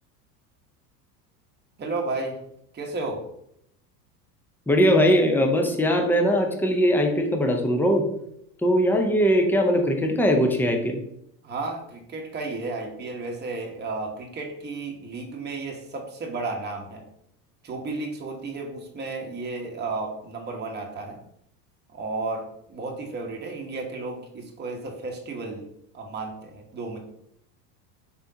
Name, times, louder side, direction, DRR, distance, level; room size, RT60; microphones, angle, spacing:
voice 1, 1.8-2.4 2.7-3.2 11.4-17.0 17.6-21.2 21.9-25.7 25.9-27.0, right 3 dB, 20° right, 1 dB, 0.9 m, -33 dB
voice 2, 4.7-8.0 8.6-11.0, equal, 5° left, 3 dB, 0.5 m, -20 dB
4.4 x 3.4 x 2.7 m, 0.74 s
hypercardioid pair, 90°, 49 cm